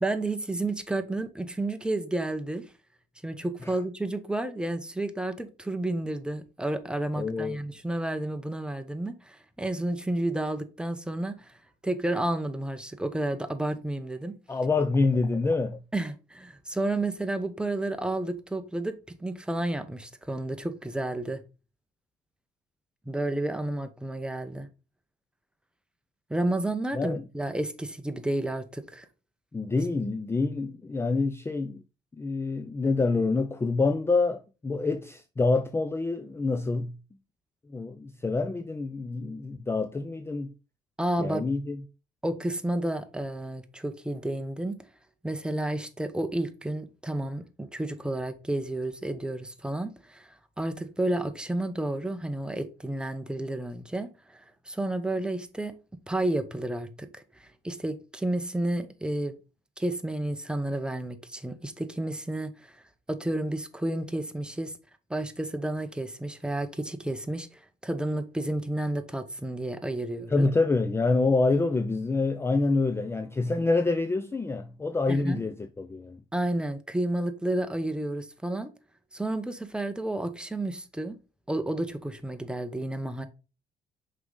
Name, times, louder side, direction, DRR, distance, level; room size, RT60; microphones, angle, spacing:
voice 1, 0.0-2.6 3.2-11.5 11.8-14.4 15.9-21.4 23.1-24.7 26.3-29.1 41.0-41.5 42.2-44.8 45.2-55.7 56.1-59.4 59.8-62.8 63.1-64.7 65.1-70.5 75.1-75.4 76.3-78.7 79.1-81.2 81.5-83.3, right 1 dB, 5° right, 0.8 m, -31 dB
voice 2, 7.2-7.6 14.5-15.8 26.9-27.2 29.5-31.8 32.2-37.0 37.7-40.5 41.2-41.8 70.3-76.2, left 3 dB, 15° left, 0.5 m, -27 dB
6.0 x 4.8 x 3.8 m
cardioid pair, 110°, 17 cm